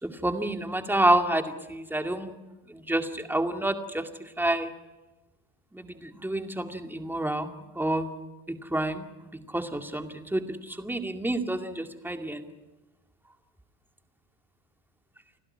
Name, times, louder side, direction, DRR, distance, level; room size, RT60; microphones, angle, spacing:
voice 1, 0.0-2.3 2.7-4.1 4.4-4.7 5.7-8.1 8.7-9.1 9.5-12.4, right 1 dB, 5° right, 6 dB, 2.2 m, -28 dB
29.5 x 12.0 x 9.8 m, 1.1 s
supercardioid pair, 100°, 39 cm